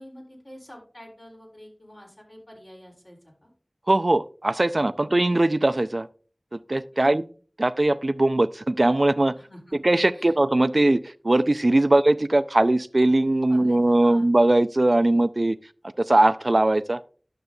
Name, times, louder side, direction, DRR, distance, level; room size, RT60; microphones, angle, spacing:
voice 1, 0.0-3.5 5.0-5.1 6.9-7.3 9.4-9.8 10.1-10.4 11.8-12.0 13.5-14.3, equal, 40° left, 3.8 m, -47 dB
voice 2, 3.9-6.1 6.5-7.2 7.6-9.4 9.8-15.6 16.0-17.0, right 2 dB, 55° right, 0.4 m, -20 dB
11.5 x 6.8 x 2.7 m
wide cardioid pair, 45°, 0 cm